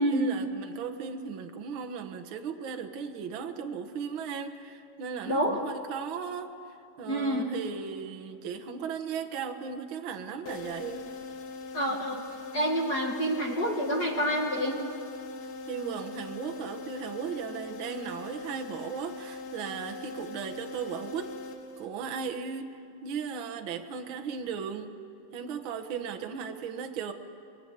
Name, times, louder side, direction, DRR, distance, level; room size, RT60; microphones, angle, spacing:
voice 1, 0.0-6.5 7.0-11.1 15.7-21.3 21.8-24.9 25.3-27.1, right 6 dB, 90° right, 6 dB, 1.1 m, -36 dB
voice 2, 5.3-5.6 7.0-7.5 11.7-12.2 12.5-14.8, equal, 40° left, 0 dB, 1.5 m, -28 dB
sound 1, 10.5-22.2, left 3 dB, 75° left, 3.4 m, -41 dB
23.5 x 21.0 x 9.9 m, 2.5 s
omnidirectional pair, 4.3 m